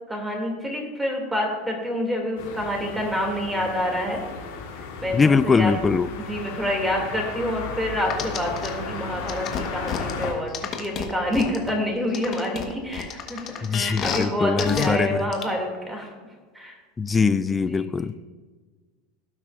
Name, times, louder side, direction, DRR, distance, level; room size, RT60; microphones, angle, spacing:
voice 1, 0.1-4.2 5.0-5.7 6.2-16.1 16.5-16.8 17.5-18.2, equal, 5° right, 1 dB, 2.5 m, -27 dB
sound 1, 2.4-10.3, left 5 dB, 80° left, 2.7 m, -35 dB
voice 2, 5.1-6.1 13.6-15.3 17.0-18.2, left 5 dB, 20° left, 14 dB, 0.3 m, -22 dB
sound 2, 8.1-8.7 9.3-11.7 12.1-14.2 14.6-14.9 15.3-15.4, left 8 dB, 40° left, 1.2 m, -29 dB
17.0 x 6.1 x 2.5 m, 1.4 s
hypercardioid pair, 100°, 0 cm